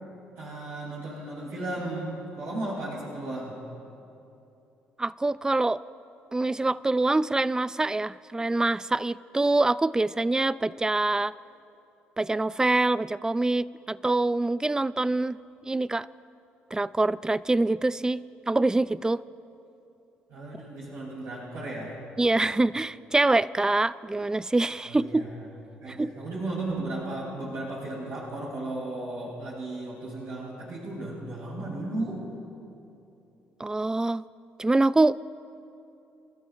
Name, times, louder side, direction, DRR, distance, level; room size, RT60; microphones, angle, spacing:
voice 1, 0.4-3.6 20.3-22.0 24.8-25.4 25.8-32.2, right 2 dB, 70° right, -6 dB, 3.0 m, -35 dB
voice 2, 5.0-5.8 6.3-11.3 12.2-15.4 15.6-16.1 16.7-19.2 22.2-25.2 25.9-26.1 33.6-34.2 34.6-35.2, right 2 dB, 15° right, 19 dB, 0.3 m, -25 dB
28.0 x 12.5 x 2.5 m, 2.8 s
supercardioid pair, 60°, 5 cm